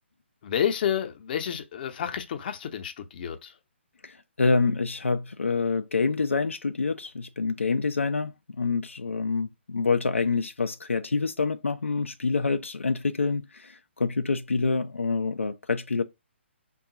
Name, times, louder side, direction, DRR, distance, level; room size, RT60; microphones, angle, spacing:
voice 1, 0.4-3.5, left 9 dB, 45° left, 0.6 m, -30 dB
voice 2, 4.0-16.0, left 4 dB, 90° left, 0.4 m, -27 dB
3.6 x 2.3 x 3.9 m
figure-of-eight pair, 135°, 7 cm